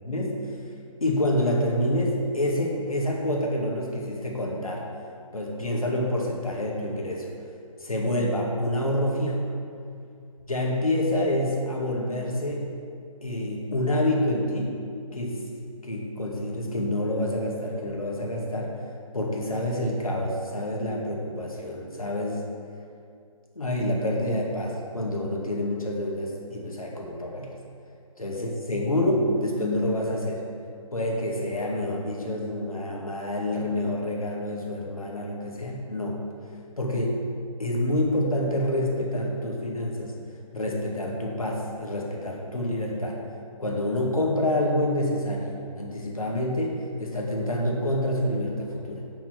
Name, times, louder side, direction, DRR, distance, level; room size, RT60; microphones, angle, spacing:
voice 1, 0.0-0.4 1.0-4.8 5.3-7.3 7.8-9.4 10.5-12.7 13.2-14.8 15.1-15.4 15.8-18.7 19.1-22.4 23.6-27.5 28.2-30.4 30.9-36.2 36.8-37.2 37.6-40.1 40.5-43.2 43.6-49.0, left 1 dB, 75° left, -2 dB, 1.9 m, -27 dB
7.2 x 5.8 x 6.3 m, 2.4 s
figure-of-eight pair, 145°, 18 cm